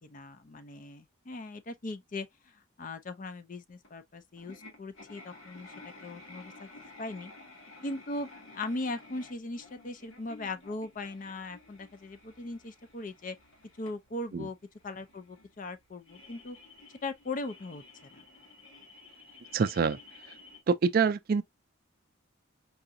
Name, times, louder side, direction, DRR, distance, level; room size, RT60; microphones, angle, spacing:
voice 1, 0.0-5.7 6.0-6.7 7.0-7.3 7.8-13.4 13.8-14.6 14.8-16.6 17.0-18.2, left 2 dB, 40° left, 0.5 m, -39 dB
sound 1, 3.8-3.9 4.4-20.6, left 2 dB, 75° left, 1.6 m, -53 dB
voice 2, 19.5-20.0 20.7-21.4, right 5 dB, 45° right, 0.3 m, -25 dB
4.7 x 2.5 x 2.6 m
head